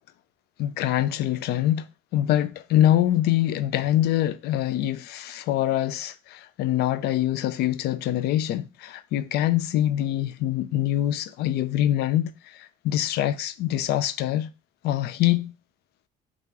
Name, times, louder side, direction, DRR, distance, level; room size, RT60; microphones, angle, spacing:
voice 1, 0.6-14.5 14.8-15.5, left 12 dB, 75° left, 0.4 m, -24 dB
3.6 x 2.8 x 3.7 m
cardioid pair, 110°, 17 cm